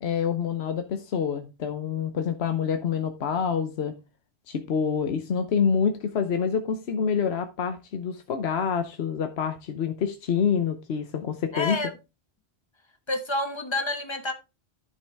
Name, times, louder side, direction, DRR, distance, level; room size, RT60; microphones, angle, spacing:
voice 1, 0.0-4.0 4.5-11.8, left 7 dB, 80° left, 1.1 m, -27 dB
voice 2, 11.5-11.9 13.1-14.3, left 2 dB, 25° left, 1.4 m, -28 dB
11.0 x 5.8 x 3.4 m
omnidirectional pair, 1.1 m